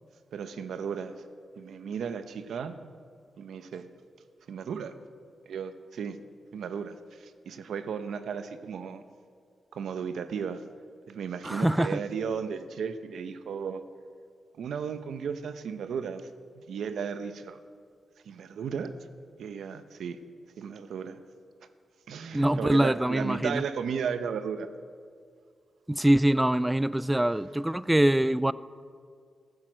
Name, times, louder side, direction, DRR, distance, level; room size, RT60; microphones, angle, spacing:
voice 1, 0.3-1.2 1.6-2.9 3.4-3.9 4.5-4.9 5.5-6.2 6.5-9.0 9.7-10.6 11.1-13.8 14.6-16.3 16.6-17.6 18.2-18.9 19.4-20.2 20.6-21.2 22.1-24.7, right 6 dB, 90° right, 10 dB, 0.8 m, -35 dB
voice 2, 11.4-12.0 22.3-23.6 25.9-28.5, right 1 dB, 10° right, 17 dB, 0.3 m, -24 dB
14.5 x 12.0 x 6.2 m, 2.1 s
wide cardioid pair, 115°, 0 cm